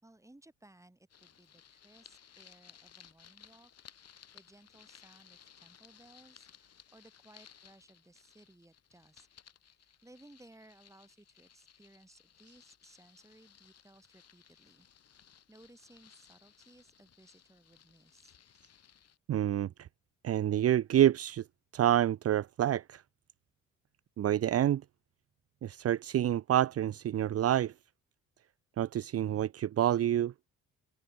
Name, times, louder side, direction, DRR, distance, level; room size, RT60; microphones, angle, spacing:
voice 1, 0.0-3.7 4.3-9.3 9.8-18.3, right 1 dB, 10° right, 7.1 m, -60 dB
sound 1, 1.1-19.2, left 8 dB, 55° left, 5.0 m, -60 dB
voice 2, 19.3-19.9 20.2-21.4 21.7-23.0 24.2-24.8 25.6-27.7 28.8-30.3, right 11 dB, 50° right, 0.7 m, -28 dB
open air
cardioid pair, 90°, 30 cm